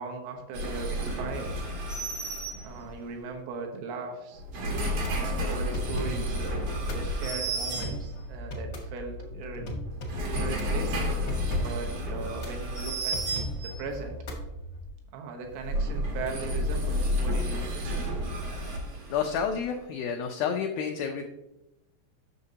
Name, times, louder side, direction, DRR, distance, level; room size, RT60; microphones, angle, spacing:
voice 1, 0.0-1.5 2.6-4.4 5.1-6.6 6.9-9.6 10.4-11.3 11.6-13.2 13.6-14.2 15.1-18.0, right 4 dB, 85° right, 3 dB, 3.4 m, -38 dB
sound 1, 0.5-3.1 4.3-8.4 9.9-13.9 15.4-19.6, equal, 70° right, 1.5 m, -31 dB
sound 2, 4.7-14.9, equal, 65° left, 1.1 m, -38 dB
voice 2, 19.1-21.3, left 7 dB, 85° left, 3 dB, 2.1 m, -30 dB
9.7 x 6.6 x 2.8 m, 0.92 s
omnidirectional pair, 4.9 m